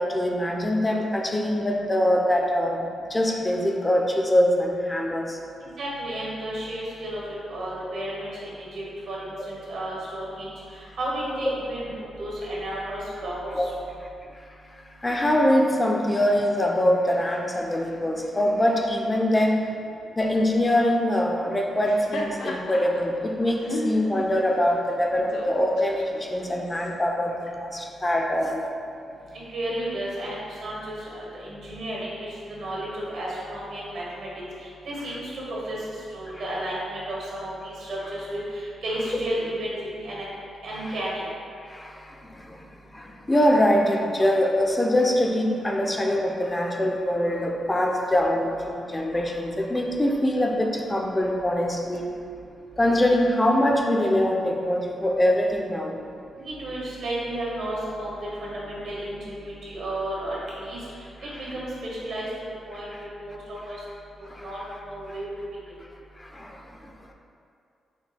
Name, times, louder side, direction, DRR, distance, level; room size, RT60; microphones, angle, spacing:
voice 1, 0.0-5.4 11.4-11.5 13.5-13.7 15.0-19.7 20.2-28.6 35.5-35.6 36.3-36.4 39.3-39.4 40.8-40.9 41.6-42.7 42.9-52.2 52.8-56.0 62.9-63.0 64.2-64.5 66.2-66.9, left 1 dB, 20° left, 1 dB, 0.4 m, -23 dB
voice 2, 5.8-7.2 7.5-13.9 29.3-34.3 34.6-35.8 36.1-40.3 40.6-41.2 56.4-58.1 58.4-60.8 61.2-62.3 62.7-63.8 64.4-65.3, right 1 dB, 80° right, -5 dB, 1.3 m, -33 dB
Laughter, 21.7-26.9, left 2 dB, 90° left, 0.5 m, -36 dB
6.1 x 2.2 x 3.3 m, 2.5 s
cardioid pair, 85°, 0 cm